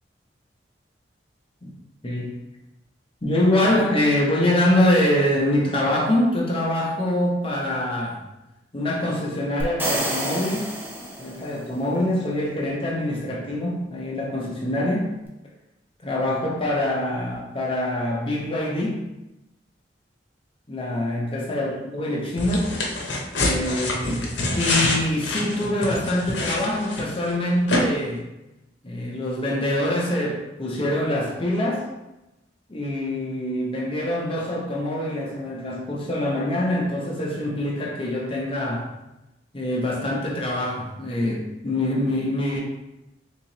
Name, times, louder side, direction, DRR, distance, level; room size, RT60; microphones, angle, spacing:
voice 1, 2.0-2.4 3.2-8.2 8.7-10.7 11.2-15.1 16.0-19.1 20.7-22.8 23.3-24.3 24.5-28.3 28.8-31.9 32.7-38.9 39.5-42.6, left 1 dB, 30° left, -3 dB, 0.7 m, -24 dB
sound 1, 9.6-11.7, right 1 dB, 10° right, 0.6 m, -29 dB
sound 2, 22.4-27.3 27.7-27.8, left 2 dB, 85° left, 0.7 m, -26 dB
3.7 x 2.9 x 2.9 m, 0.95 s
head